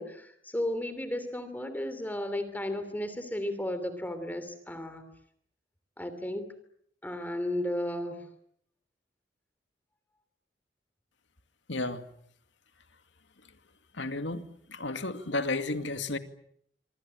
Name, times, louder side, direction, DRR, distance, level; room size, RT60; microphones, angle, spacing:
voice 1, 0.0-5.0 6.0-6.4 7.0-8.3, left 1 dB, 10° left, 3.1 m, -34 dB
voice 2, 11.7-12.1 14.0-14.4 14.7-16.2, left 2 dB, 80° left, 2.3 m, -32 dB
26.0 x 25.5 x 8.7 m
head